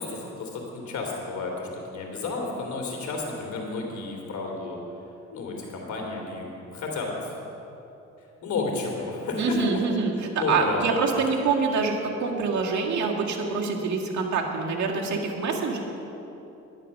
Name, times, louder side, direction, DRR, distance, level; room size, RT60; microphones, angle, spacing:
voice 1, 0.0-4.8 5.3-7.4 8.2-9.6 10.1-10.9, left 3 dB, 70° left, 0 dB, 3.1 m, -32 dB
voice 2, 9.4-15.8, right 4 dB, 70° right, -1 dB, 2.0 m, -25 dB
11.0 x 11.0 x 6.6 m, 2.9 s
cardioid pair, 90°, 30 cm